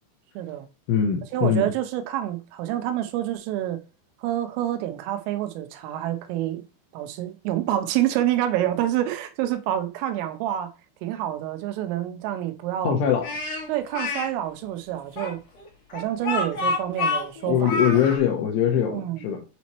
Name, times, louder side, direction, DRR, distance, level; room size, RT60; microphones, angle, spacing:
voice 1, 0.4-0.7 1.3-3.8 4.2-6.6 6.9-10.7 11.0-13.0 13.7-15.4 15.9-17.7 18.9-19.3, right 12 dB, 90° right, 3.4 m, -27 dB
voice 2, 0.9-1.7 12.8-13.3 17.5-19.4, left 8 dB, 80° left, 2.6 m, -22 dB
Speech, 13.2-14.3 15.2-18.2, left 3 dB, 35° left, 3.4 m, -28 dB
7.9 x 4.1 x 3.0 m
omnidirectional pair, 5.7 m